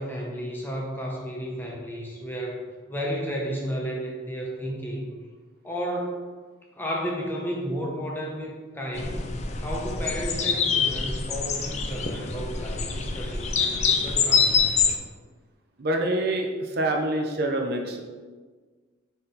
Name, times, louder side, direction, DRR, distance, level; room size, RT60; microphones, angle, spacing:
voice 1, 0.0-2.6 2.9-5.2 5.6-6.2 6.7-9.3 9.6-14.7, equal, 10° left, -2 dB, 0.9 m, -32 dB
sound 1, 9.0-15.0, left 5 dB, 35° left, 0.5 m, -25 dB
voice 2, 15.8-18.0, right 1 dB, 55° right, 2 dB, 0.6 m, -26 dB
5.7 x 4.2 x 3.9 m, 1.4 s
head